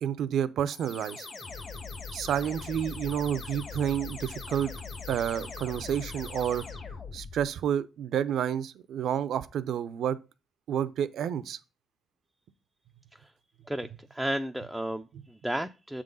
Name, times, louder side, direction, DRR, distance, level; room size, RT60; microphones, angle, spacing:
voice 1, 0.0-1.3 2.1-4.7 5.1-6.6 7.1-10.2 10.7-11.6, right 9 dB, 70° right, 0.5 m, -30 dB
sound 1, 0.7-7.5, left 4 dB, 50° left, 1.8 m, -41 dB
voice 2, 13.7-16.0, right 1 dB, 5° right, 0.4 m, -33 dB
7.4 x 3.7 x 5.3 m
cardioid pair, 90°, 0 cm